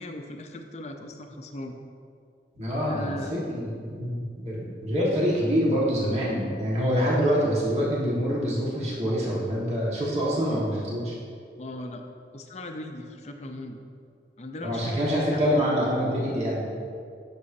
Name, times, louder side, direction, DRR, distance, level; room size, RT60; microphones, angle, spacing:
voice 1, 0.0-1.8 2.8-3.4 11.6-12.0 12.3-13.8 14.4-15.7, left 1 dB, 40° left, 4 dB, 0.6 m, -38 dB
voice 2, 2.5-11.1 14.6-16.8, equal, 40° right, -6 dB, 1.5 m, -26 dB
9.6 x 6.9 x 2.7 m, 2.3 s
head